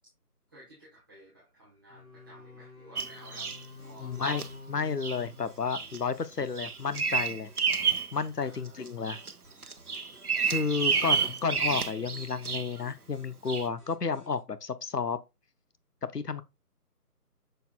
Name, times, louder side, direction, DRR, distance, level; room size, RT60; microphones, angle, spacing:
voice 1, 0.5-3.5 3.8-4.1 8.4-8.8 10.6-11.1, right 1 dB, 15° right, 1.3 m, -54 dB
sound 1, 1.9-6.4, left 4 dB, 65° left, 4.0 m, -49 dB
Bird vocalization bird call bird song, 3.0-3.6 4.2-4.5 5.0-5.2 5.7-6.0 6.3-8.1 8.5-9.3 9.6-12.8 13.5-13.7, right 6 dB, 65° right, 0.9 m, -30 dB
sound 2, 3.8-14.4, right 1 dB, 5° left, 2.9 m, -59 dB
voice 2, 4.0-7.5 8.1-9.2 10.5-15.2 16.0-16.4, left 5 dB, 85° left, 0.8 m, -31 dB
6.6 x 6.5 x 2.2 m
figure-of-eight pair, 160°, 47 cm